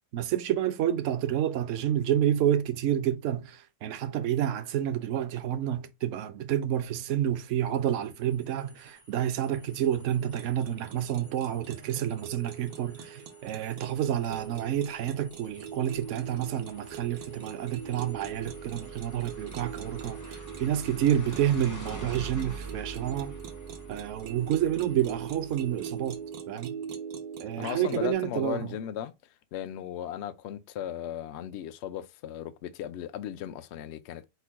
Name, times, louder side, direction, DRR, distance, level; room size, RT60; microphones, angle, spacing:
voice 1, 0.1-23.4 23.9-26.8 27.4-28.8, right 11 dB, 65° right, 0.8 m, -29 dB
sound 1, 7.7-26.3, right 2 dB, 30° left, 0.3 m, -47 dB
sound 2, 10.3-28.1, right 7 dB, 85° right, 1.2 m, -42 dB
voice 2, 27.6-29.1 29.5-34.2, left 10 dB, 75° left, 0.6 m, -36 dB
4.5 x 2.1 x 4.5 m
omnidirectional pair, 1.7 m